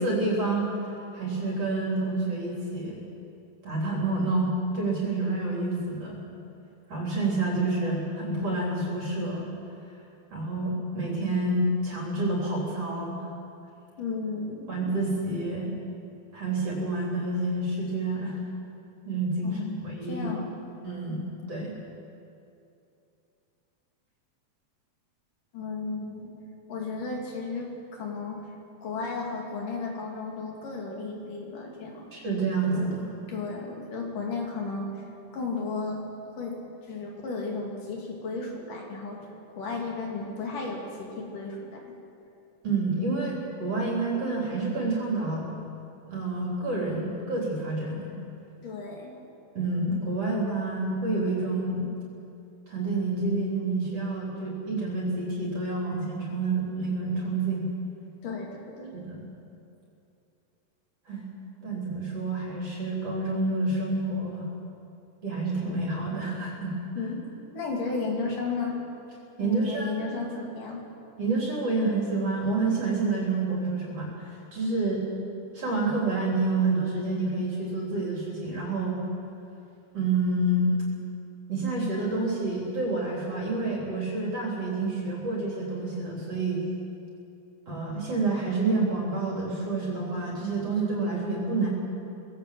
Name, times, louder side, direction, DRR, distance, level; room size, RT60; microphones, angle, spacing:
voice 1, 0.0-3.0 3.6-6.2 6.9-9.5 10.3-13.3 14.7-15.7 16.3-18.4 19.0-20.3 20.8-21.2 21.5-21.7 32.1-33.0 42.6-45.5 46.1-48.1 49.5-51.9 52.7-57.7 58.9-59.3 61.1-61.2 61.6-64.5 65.2-66.7 69.4-70.1 71.2-75.0 75.5-79.0 79.9-80.7 81.5-86.7 87.7-91.7, right 2 dB, 45° right, -3 dB, 4.4 m, -28 dB
voice 2, 14.0-14.7 19.4-20.7 25.5-26.3 26.7-28.4 28.8-32.0 32.8-32.9 33.3-34.9 35.3-36.0 36.4-36.6 36.9-39.2 39.5-41.8 48.6-49.1 58.2-58.9 67.0-68.8 69.4-70.8, left 4 dB, 70° left, -1 dB, 4.2 m, -34 dB
20.5 x 17.0 x 7.6 m, 2.7 s
omnidirectional pair, 4.0 m